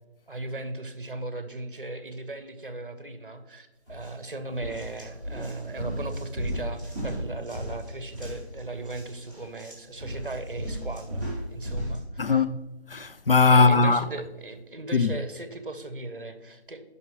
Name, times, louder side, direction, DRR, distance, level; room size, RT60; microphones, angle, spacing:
voice 1, 0.3-12.4 13.5-16.8, right 2 dB, 55° right, 0.8 m, -37 dB
sound 1, 3.9-4.1 4.5-12.0, equal, 20° left, 2.6 m, -35 dB
voice 2, 12.2-14.0 14.9-15.2, left 4 dB, 60° left, 0.4 m, -20 dB
11.0 x 5.7 x 3.1 m
figure-of-eight pair, 180°, 33 cm